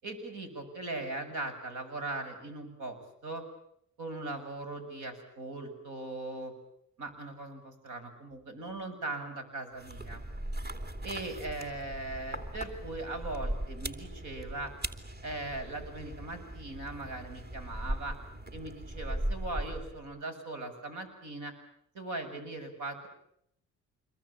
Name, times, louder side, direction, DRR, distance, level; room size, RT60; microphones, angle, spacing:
voice 1, 0.0-3.4 4.0-6.5 7.0-10.2 11.0-14.7 15.2-18.2 18.5-21.5 21.9-23.1, right 2 dB, 80° right, 7 dB, 7.6 m, -39 dB
sound 1, 9.8-20.1, right 1 dB, 35° right, 2.9 m, -39 dB
27.0 x 22.5 x 8.8 m, 0.72 s
cardioid pair, 90°, 30 cm